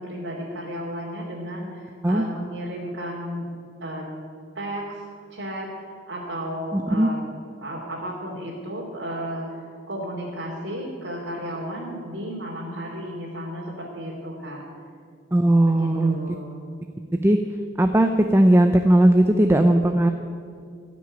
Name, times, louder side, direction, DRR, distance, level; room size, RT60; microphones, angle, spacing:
voice 1, 0.0-3.4 3.8-4.0 4.5-5.0 5.3-7.3 7.6-14.6 15.8-16.6, equal, 80° right, -6 dB, 2.7 m, -33 dB
voice 2, 6.7-7.1 15.3-16.2 17.1-17.4 17.8-20.1, right 1 dB, 15° right, 6 dB, 0.5 m, -18 dB
17.0 x 6.2 x 9.8 m, 2.3 s
head